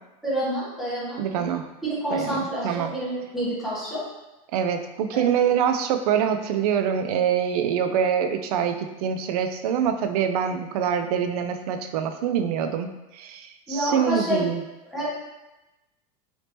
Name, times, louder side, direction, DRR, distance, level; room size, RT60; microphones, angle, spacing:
voice 1, 0.2-1.6 1.8-4.0 5.1-5.3 13.7-14.4 14.8-15.1, equal, ahead, -9 dB, 0.8 m, -28 dB
voice 2, 1.2-1.6 2.1-2.4 2.6-2.9 4.5-14.6, right 8 dB, 80° right, 7 dB, 0.4 m, -25 dB
3.4 x 2.8 x 2.8 m, 1.0 s
supercardioid pair, 170°, 19 cm